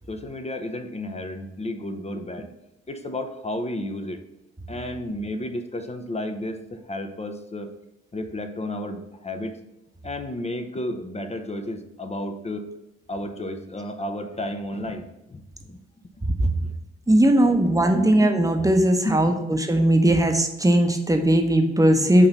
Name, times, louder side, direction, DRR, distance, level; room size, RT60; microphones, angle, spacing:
voice 1, 0.1-2.5 2.9-4.2 4.7-7.7 8.1-9.6 10.0-12.6 13.1-15.8 16.4-16.6 17.4-17.6 17.9-18.1 19.0-19.2, left 1 dB, 20° left, 7 dB, 0.7 m, -32 dB
voice 2, 17.1-22.3, right 1 dB, 10° right, 5 dB, 0.9 m, -19 dB
6.0 x 2.9 x 5.4 m, 0.91 s
hypercardioid pair, 50°, 30 cm